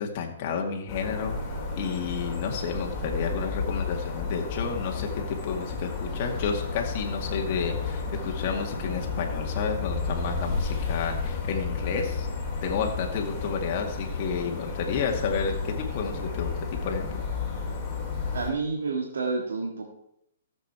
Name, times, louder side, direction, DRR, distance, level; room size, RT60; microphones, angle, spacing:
voice 1, 0.0-1.4 1.8-12.3 12.6-17.2, left 6 dB, 40° left, 2 dB, 2.1 m, -31 dB
sound 1, 0.9-18.5, left 4 dB, 20° left, 3.5 m, -32 dB
voice 2, 18.3-19.8, right 4 dB, 80° right, 0 dB, 1.8 m, -29 dB
14.5 x 7.6 x 4.6 m, 0.75 s
hypercardioid pair, 150°, 0 cm